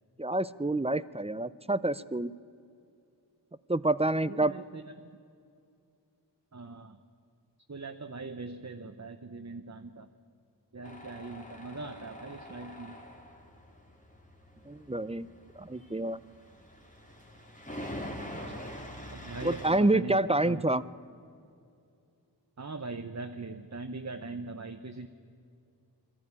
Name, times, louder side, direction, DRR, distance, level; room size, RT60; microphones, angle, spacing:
voice 1, 0.2-2.3 3.7-4.5 14.7-15.3 15.6-16.2 19.4-20.8, right 2 dB, 15° right, 17 dB, 0.5 m, -28 dB
voice 2, 4.3-4.8 6.5-7.0 7.7-10.1 10.7-13.0 19.1-20.2 20.5-20.6 22.6-25.1, right 3 dB, 40° right, 6 dB, 0.9 m, -41 dB
Tools, 10.8-19.8, left 1 dB, 15° left, 2.6 m, -45 dB
21.5 x 14.0 x 9.8 m, 2.5 s
wide cardioid pair, 45°, 43 cm